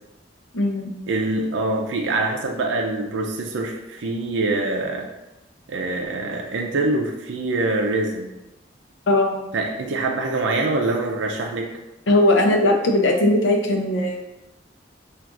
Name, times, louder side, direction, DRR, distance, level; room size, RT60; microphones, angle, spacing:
voice 1, 0.5-0.9 1.3-1.4 9.1-9.4 12.1-14.2, left 1 dB, 85° left, 3 dB, 0.6 m, -19 dB
voice 2, 1.1-5.1 5.7-8.3 9.5-11.7, right 2 dB, 80° right, 1 dB, 0.5 m, -24 dB
5.8 x 2.5 x 2.5 m, 0.95 s
head